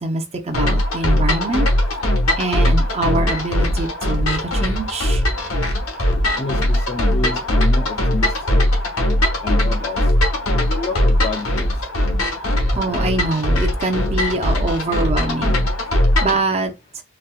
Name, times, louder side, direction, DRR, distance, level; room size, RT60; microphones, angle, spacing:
voice 1, 0.0-1.7 2.4-5.2 12.7-15.7 16.2-16.7, right 2 dB, 30° right, 0.6 m, -24 dB
sound 1, 0.5-16.4, left 1 dB, 85° left, 1.0 m, -19 dB
voice 2, 6.4-8.6 9.4-10.0 10.5-11.7 12.7-12.8, left 3 dB, 30° left, 0.4 m, -29 dB
4.1 x 2.1 x 2.3 m
head